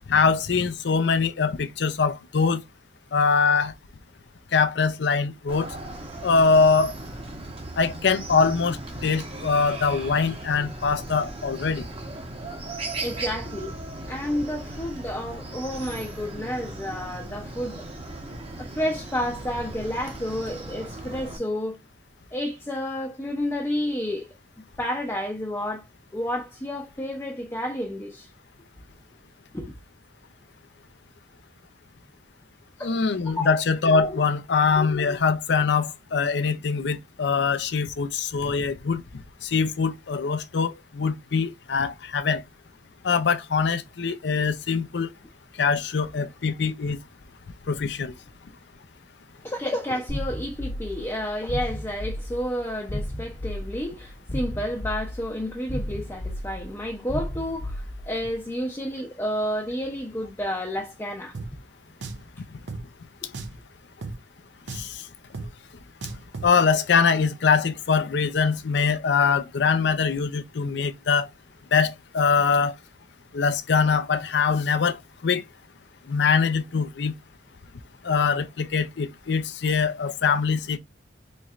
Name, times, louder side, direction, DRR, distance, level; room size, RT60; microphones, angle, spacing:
voice 1, 0.1-2.6 3.1-3.7 4.5-5.7 6.2-6.9 7.8-11.9 32.8-39.0 39.4-42.4 43.0-45.1 45.6-47.0 47.7-48.1 64.7-65.0 66.4-71.3 71.7-72.7 73.3-75.0 75.2-75.4 76.1-77.1 78.0-80.8, left 5 dB, 65° left, 0.5 m, -23 dB
Chicken rooster, 5.5-21.4, right 2 dB, 35° right, 1.0 m, -37 dB
voice 2, 13.0-13.8 14.1-17.9 18.6-21.8 22.3-24.3 24.8-25.9 26.1-28.3 29.5-29.7 32.8-33.0 33.3-33.5 33.9-34.3 49.4-61.3 63.2-63.3, equal, 15° left, 0.6 m, -30 dB
sound 1, 50.1-58.3, left 1 dB, 45° left, 0.9 m, -34 dB
Drum, 61.3-61.5 62.0-62.3 62.7-62.8 63.3-63.6 64.0-64.2 64.7-64.9 65.3-65.5 66.0-66.5, right 3 dB, 85° right, 0.6 m, -35 dB
4.2 x 3.1 x 2.4 m
head